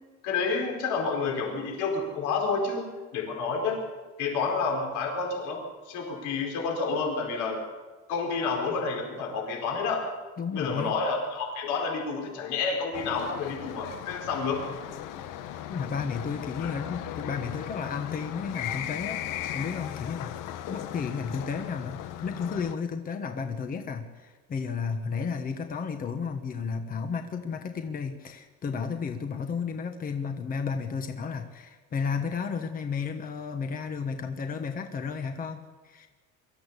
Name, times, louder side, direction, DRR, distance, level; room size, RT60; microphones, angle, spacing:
voice 1, 0.2-2.8 3.1-3.8 4.2-5.6 5.8-7.6 8.1-10.1 10.5-14.6 16.6-16.7, left 4 dB, 70° left, 0 dB, 4.8 m, -29 dB
voice 2, 10.4-10.9 15.2-15.3 15.7-20.3 20.7-36.1, left 5 dB, 25° left, 6 dB, 1.2 m, -33 dB
sound 1, 12.9-22.7, left 12 dB, 90° left, 1.3 m, -37 dB
23.5 x 14.0 x 8.3 m, 1.3 s
cardioid pair, 170°, 31 cm